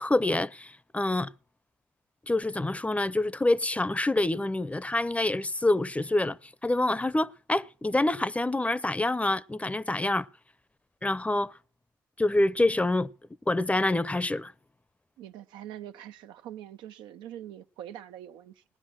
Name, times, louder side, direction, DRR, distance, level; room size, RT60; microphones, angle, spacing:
voice 1, 0.0-1.3 2.3-6.4 6.6-10.3 11.0-11.5 12.2-13.1 13.5-14.5, left 2 dB, 15° left, 0.6 m, -26 dB
voice 2, 15.2-18.6, right 11 dB, 85° right, 0.6 m, -43 dB
18.0 x 10.0 x 6.2 m
supercardioid pair, 50°, 8 cm